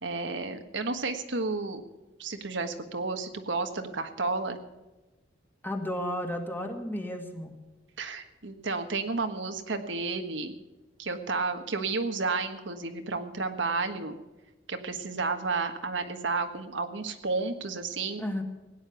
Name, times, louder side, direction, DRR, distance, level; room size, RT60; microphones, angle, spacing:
voice 1, 0.0-1.8 2.2-4.6 8.0-10.5 11.0-14.2 14.7-18.2, right 3 dB, 80° right, 6 dB, 1.5 m, -32 dB
voice 2, 5.6-7.5 18.2-18.4, equal, 10° left, 3 dB, 2.0 m, -33 dB
17.0 x 9.8 x 7.0 m, 1.1 s
head